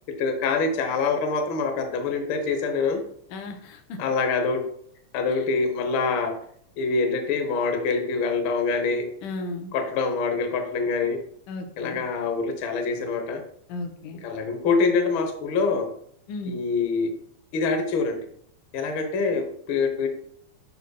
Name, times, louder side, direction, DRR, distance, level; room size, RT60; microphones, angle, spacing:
voice 1, 0.2-3.0 4.0-4.6 5.1-6.3 6.8-9.1 9.7-11.2 11.8-13.4 14.2-15.9 16.5-17.1 17.5-18.2 18.7-20.1, left 4 dB, 70° left, 4 dB, 1.2 m, -25 dB
voice 2, 3.3-4.0 5.3-5.4 9.2-9.7 11.5-12.0 13.7-14.2 16.3-16.6, left 2 dB, 90° left, 5 dB, 2.4 m, -35 dB
11.5 x 4.2 x 2.3 m, 0.66 s
omnidirectional pair, 3.7 m